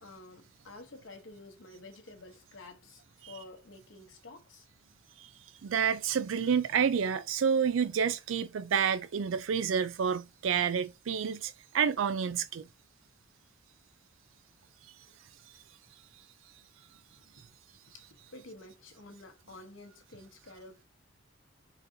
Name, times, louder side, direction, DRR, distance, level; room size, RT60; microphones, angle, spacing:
voice 1, 0.0-4.7 17.4-17.5 17.9-18.1 18.3-20.8, left 2 dB, 75° left, 0.9 m, -50 dB
voice 2, 5.6-12.7, right 7 dB, 80° right, 0.4 m, -29 dB
4.0 x 3.9 x 2.7 m
head